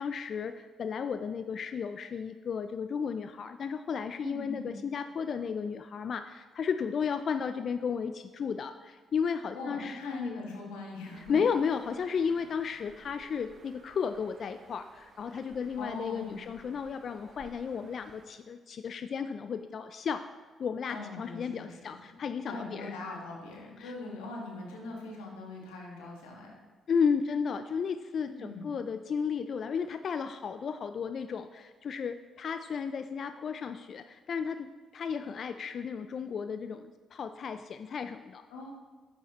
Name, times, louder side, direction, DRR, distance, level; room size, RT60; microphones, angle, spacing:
voice 1, 0.0-10.4 11.3-20.2 20.6-22.9 23.8-23.9 26.9-34.7 34.9-38.5, left 6 dB, 60° left, 9 dB, 0.3 m, -33 dB
voice 2, 4.2-4.7 9.5-11.4 15.8-16.4 20.9-22.2 22.4-26.5 28.3-28.7 38.5-38.7, left 2 dB, 85° left, -1 dB, 1.6 m, -41 dB
Bird, 11.1-18.2, right 4 dB, 55° right, 0.8 m, -57 dB
10.0 x 7.2 x 3.0 m, 1.4 s
hypercardioid pair, 50°, 0 cm